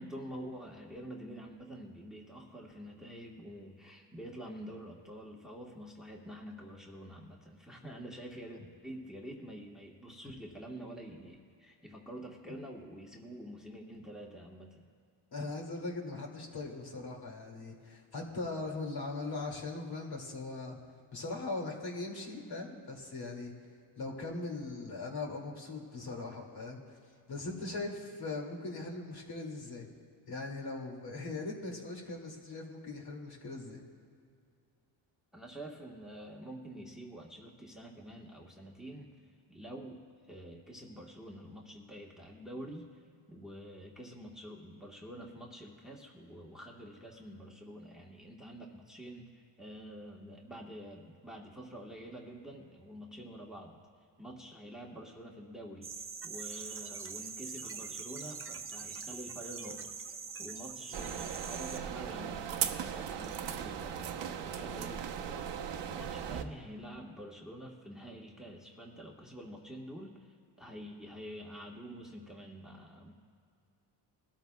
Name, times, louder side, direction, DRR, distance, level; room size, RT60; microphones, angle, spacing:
voice 1, 0.0-14.8 35.3-39.1 39.5-43.0 43.3-53.8 54.2-59.9 60.4-73.1, equal, ahead, -1 dB, 1.4 m, -47 dB
voice 2, 15.3-20.8 21.1-23.5 24.0-26.8 27.3-29.9 30.3-33.8 60.9-61.1, left 3 dB, 50° left, 0 dB, 2.5 m, -40 dB
sound 1, 55.8-61.8, right 5 dB, 25° right, 0.9 m, -43 dB
sound 2, 60.9-66.4, right 8 dB, 60° right, 1.0 m, -38 dB
21.5 x 13.0 x 2.3 m, 2.3 s
cardioid pair, 95°, 48 cm